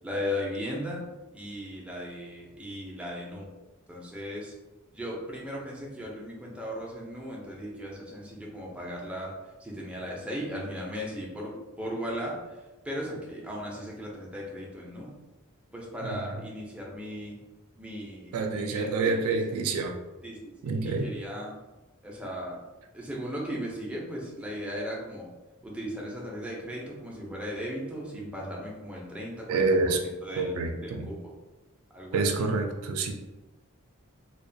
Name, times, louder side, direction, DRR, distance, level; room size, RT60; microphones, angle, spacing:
voice 1, 0.0-1.0 1.3-3.5 3.9-4.5 4.9-9.3 9.6-12.4 12.8-15.2 15.7-17.4 17.8-19.6 20.2-21.5 22.0-22.6 22.9-25.3 25.6-29.7 30.0-30.5 30.8-31.2 31.9-32.5, equal, 5° right, -3 dB, 0.4 m, -37 dB
voice 2, 16.0-16.4 18.3-20.0 20.6-21.1 29.5-30.0 30.4-31.1 32.1-33.1, right 3 dB, 90° right, 4 dB, 0.3 m, -27 dB
2.3 x 2.1 x 2.6 m, 1.1 s
head